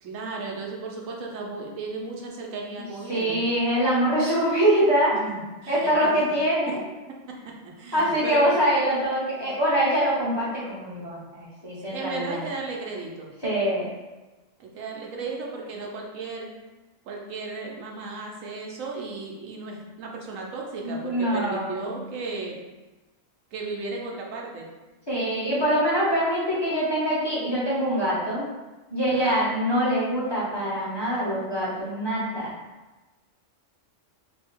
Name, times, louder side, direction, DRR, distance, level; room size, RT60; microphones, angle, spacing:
voice 1, 0.0-3.5 5.1-6.3 6.7-6.8 7.3-8.5 11.8-13.3 14.6-16.5 17.1-22.6 23.5-24.7 29.1-29.4, right 3 dB, 80° right, 0 dB, 1.1 m, -35 dB
voice 2, 3.1-5.2 5.7-6.8 7.9-12.4 13.4-13.9 20.8-21.9 25.1-28.4 28.9-32.5, equal, 20° left, -8 dB, 0.8 m, -24 dB
2.8 x 2.7 x 4.3 m, 1.1 s
omnidirectional pair, 1.4 m